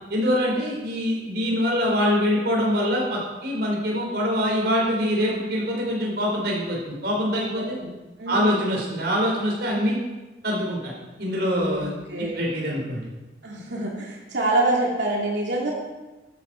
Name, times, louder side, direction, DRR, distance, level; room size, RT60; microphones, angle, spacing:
voice 1, 0.1-7.8 8.3-10.0 10.4-10.9 11.2-13.1, equal, 60° right, -2 dB, 4.8 m, -24 dB
voice 2, 7.6-7.9 8.2-8.6 11.5-12.4 13.4-15.7, right 2 dB, 75° right, -3 dB, 2.7 m, -26 dB
13.5 x 13.0 x 4.6 m, 1.1 s
head